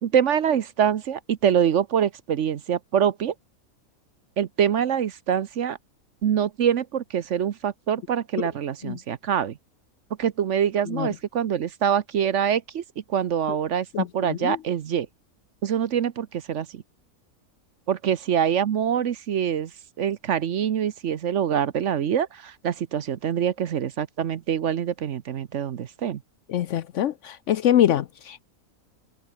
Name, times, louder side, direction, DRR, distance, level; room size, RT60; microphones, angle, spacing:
voice 1, 0.0-3.3 4.4-5.8 6.2-9.6 10.2-12.8 13.1-15.1 15.6-16.8 17.9-19.7 20.0-26.2, right 8 dB, 60° right, 1.1 m, -25 dB
voice 2, 13.9-14.6 26.5-28.4, left 11 dB, 65° left, 0.9 m, -24 dB
omnidirectional pair, 1.5 m